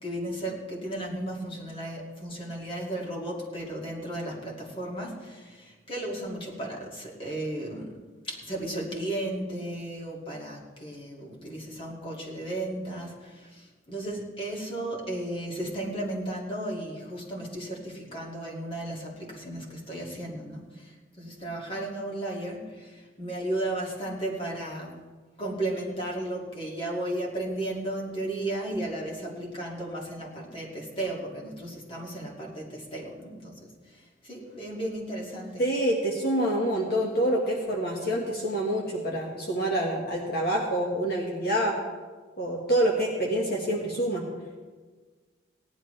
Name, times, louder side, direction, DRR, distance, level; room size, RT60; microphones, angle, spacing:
voice 1, 0.0-24.9 25.4-35.6, right 1 dB, 30° left, -3 dB, 2.4 m, -34 dB
voice 2, 35.6-41.8 42.4-44.2, right 1 dB, 55° left, -2 dB, 1.6 m, -27 dB
18.0 x 11.0 x 3.3 m, 1.4 s
head